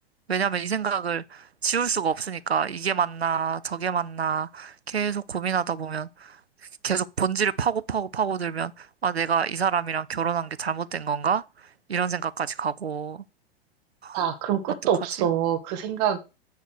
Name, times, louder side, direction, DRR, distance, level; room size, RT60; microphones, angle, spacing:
voice 1, 0.3-6.4 6.8-13.2 14.0-14.2 15.2-15.3, right 7 dB, 90° right, 0.5 m, -27 dB
voice 2, 14.1-16.2, right 9 dB, 40° right, 1.0 m, -25 dB
9.4 x 3.3 x 6.3 m
figure-of-eight pair, 95°, 31 cm